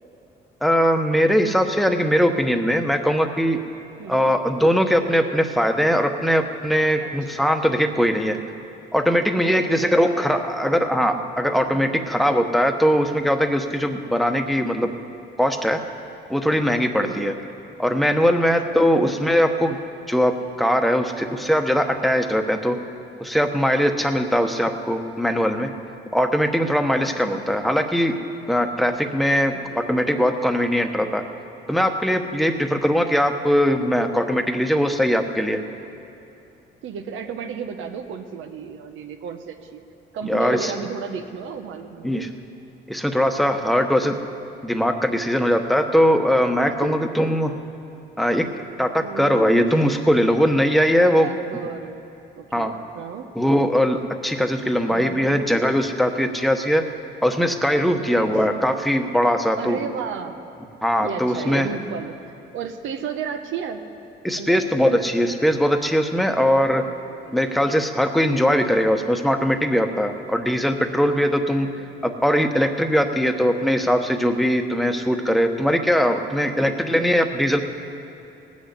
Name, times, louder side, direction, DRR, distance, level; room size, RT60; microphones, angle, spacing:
voice 1, 0.6-3.6 4.1-8.4 8.9-14.9 15.4-15.8 16.3-17.3 17.8-19.8 20.1-22.8 23.2-25.7 26.1-28.2 28.5-31.2 31.7-35.6 40.2-40.7 42.0-42.3 42.9-44.2 44.6-47.5 48.2-48.4 48.8-51.3 52.5-52.7 53.4-54.0 54.2-56.8 57.2-59.8 60.8-61.7 64.2-66.8 67.3-71.7 72.0-77.6, equal, ahead, 6 dB, 1.0 m, -20 dB
voice 2, 4.0-4.3 7.0-7.7 9.2-10.9 11.7-12.0 17.0-17.3 18.3-19.0 27.0-27.4 29.5-29.8 32.4-32.8 36.8-39.8 40.1-42.2 46.7-47.0 49.0-49.7 51.0-52.0 52.4-53.3 54.9-55.4 57.9-58.3 59.6-60.5 61.0-63.8 64.4-64.6 66.4-66.7 67.3-67.4 70.5-70.6 71.6-71.7 75.7-77.0, right 7 dB, 85° right, 5 dB, 1.0 m, -34 dB
18.5 x 6.4 x 8.3 m, 2.6 s
cardioid pair, 90°, 20 cm